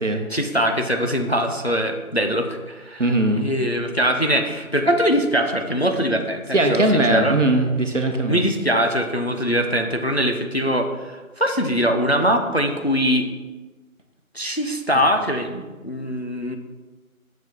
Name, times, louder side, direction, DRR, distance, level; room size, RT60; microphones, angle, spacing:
voice 1, 0.3-3.1 3.4-7.4 8.3-13.3 14.3-16.6, equal, 50° left, 5 dB, 0.5 m, -22 dB
voice 2, 3.0-3.5 6.5-8.4, right 2 dB, 60° right, 4 dB, 0.9 m, -19 dB
6.4 x 6.2 x 2.7 m, 1.2 s
figure-of-eight pair, 180°, 43 cm